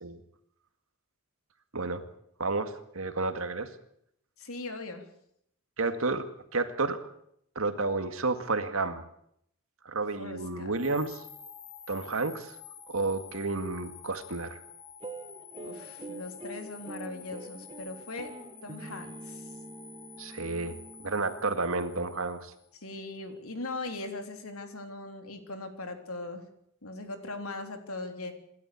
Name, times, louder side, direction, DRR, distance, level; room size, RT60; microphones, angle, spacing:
voice 1, 2.4-3.7 5.8-6.3 6.5-7.0 7.6-9.0 9.9-11.2 11.9-12.6 12.9-14.6 20.2-22.5, right 3 dB, 70° right, 8 dB, 2.0 m, -31 dB
voice 2, 4.4-5.1 10.2-10.7 15.6-18.3 18.6-19.5 22.7-26.4 26.8-28.3, left 2 dB, 80° left, 5 dB, 3.5 m, -40 dB
sound 1, 10.7-22.9, left 7 dB, 55° left, 4.1 m, -50 dB
sound 2, 15.0-21.5, right 2 dB, 25° right, 1.3 m, -45 dB
27.5 x 12.5 x 8.5 m, 0.73 s
head